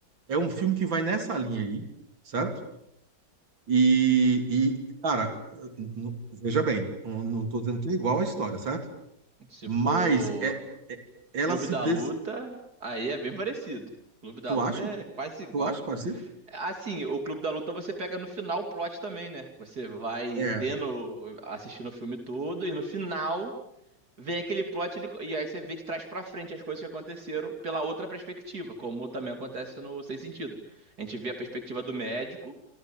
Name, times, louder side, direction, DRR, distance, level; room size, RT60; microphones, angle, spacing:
voice 1, 0.3-1.8 2.3-2.6 3.7-4.8 5.0-8.8 9.7-10.6 10.9-11.0 11.3-12.0 14.5-14.9 15.5-16.2 20.4-20.6, right 4 dB, 75° right, 7 dB, 3.7 m, -27 dB
voice 2, 9.5-10.5 11.5-13.9 14.2-15.8 16.1-23.5 24.2-32.5, right 2 dB, 55° right, 5 dB, 3.4 m, -34 dB
27.5 x 26.5 x 7.6 m, 0.79 s
omnidirectional pair, 2.1 m